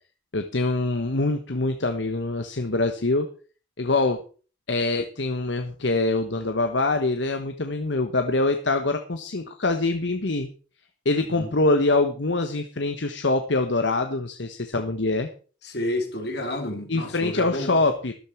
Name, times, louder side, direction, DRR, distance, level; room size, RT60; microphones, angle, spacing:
voice 1, 0.3-3.3 3.8-4.2 4.7-10.5 11.0-15.3 16.9-18.1, left 2 dB, 75° left, 1.2 m, -24 dB
voice 2, 15.6-17.8, left 1 dB, 60° left, 2.9 m, -30 dB
13.0 x 12.5 x 4.5 m
head